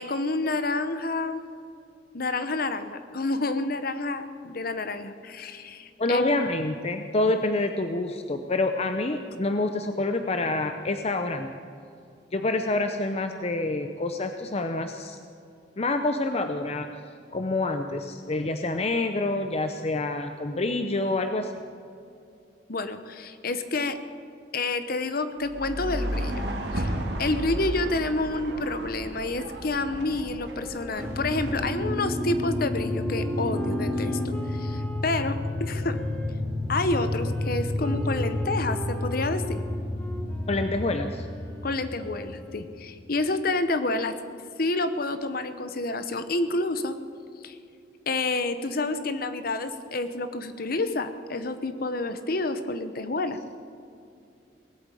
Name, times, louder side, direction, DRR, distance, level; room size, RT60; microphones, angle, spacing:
voice 1, 0.0-1.4 2.1-6.3 22.7-24.0 24.5-26.5 26.7-26.9 27.2-36.0 36.7-39.6 41.6-44.1 44.6-47.0 47.4-47.5 48.1-53.4, left 2 dB, 55° left, 10 dB, 1.0 m, -29 dB
voice 2, 6.0-11.5 12.3-15.2 15.8-16.9 17.3-21.5 40.5-41.3, left 2 dB, 35° left, 7 dB, 0.7 m, -27 dB
sound 1, 25.4-31.7, right 1 dB, 65° right, 2.2 m, -33 dB
Wind instrument woodwind instrument, 30.4-36.3 37.0-42.8, right 1 dB, 10° left, 1.4 m, -43 dB
sound 2, 31.0-43.2, left 1 dB, 15° right, 2.6 m, -30 dB
19.0 x 8.6 x 8.4 m, 2.5 s
head